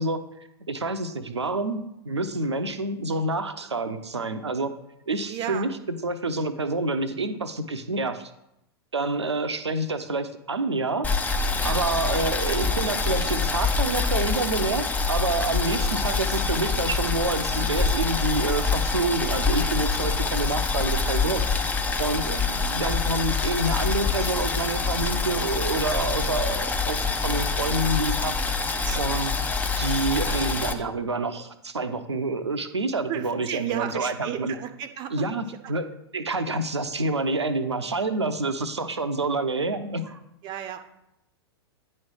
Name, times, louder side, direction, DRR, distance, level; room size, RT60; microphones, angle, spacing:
voice 1, 0.0-4.7 5.1-8.3 8.9-11.1 11.6-28.3 28.9-29.3 29.8-34.6 35.1-40.2, right 2 dB, 80° right, 9 dB, 0.7 m, -28 dB
voice 2, 5.3-5.7 11.6-11.9 22.2-22.6 28.8-29.2 33.1-35.2 40.4-40.8, right 10 dB, 30° right, 9 dB, 0.7 m, -34 dB
Boiling, 11.0-30.7, left 4 dB, 10° left, 0.6 m, -26 dB
9.4 x 3.2 x 6.3 m, 0.83 s
figure-of-eight pair, 100°, 14 cm